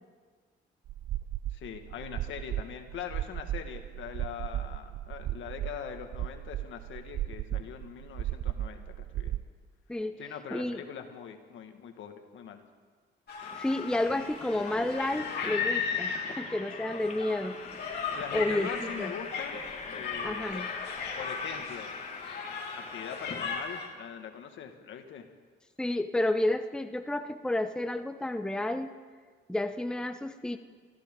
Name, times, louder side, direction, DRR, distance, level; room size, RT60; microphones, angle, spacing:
sound 1, 0.9-9.4, right 13 dB, 60° right, 0.4 m, -35 dB
voice 1, 1.5-9.4 10.2-12.6 18.1-19.6 19.9-20.7 21.2-21.9 22.7-25.3, left 8 dB, 75° left, 6 dB, 1.7 m, -42 dB
voice 2, 10.5-10.8 13.5-17.6 18.3-19.1 20.2-20.7 25.8-28.9 29.5-30.6, left 1 dB, 5° left, 8 dB, 0.8 m, -31 dB
sound 2, 13.3-23.9, left 5 dB, 55° left, 3.2 m, -36 dB
sound 3, 13.4-23.6, left 4 dB, 35° left, 1.6 m, -43 dB
25.5 x 14.5 x 3.7 m, 1.5 s
cardioid pair, 90°, 20 cm